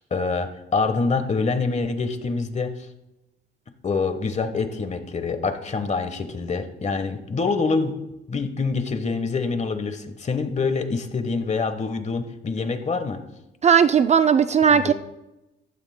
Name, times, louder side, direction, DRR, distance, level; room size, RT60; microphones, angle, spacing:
voice 1, 0.0-2.7 3.8-8.0 8.3-13.2 14.7-14.9, left 4 dB, 35° left, 8 dB, 1.2 m, -25 dB
voice 2, 13.6-14.9, right 7 dB, 35° right, 11 dB, 0.4 m, -17 dB
15.0 x 12.0 x 2.2 m, 0.95 s
cardioid pair, 90°, 20 cm